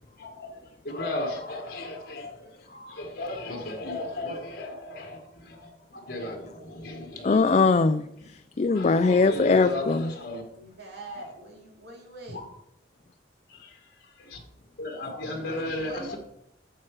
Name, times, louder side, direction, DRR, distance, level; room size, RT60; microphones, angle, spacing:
voice 1, 0.2-7.6 8.7-10.4 11.1-11.2 12.3-12.4 13.5-13.7 14.2-14.4 14.8-16.2, left 1 dB, 55° left, 2 dB, 1.8 m, -35 dB
voice 2, 7.2-10.1, left 4 dB, 40° left, 10 dB, 0.4 m, -21 dB
voice 3, 10.6-12.4 15.4-16.2, right 2 dB, 65° right, 0 dB, 2.7 m, -43 dB
9.0 x 7.5 x 4.8 m, 0.74 s
head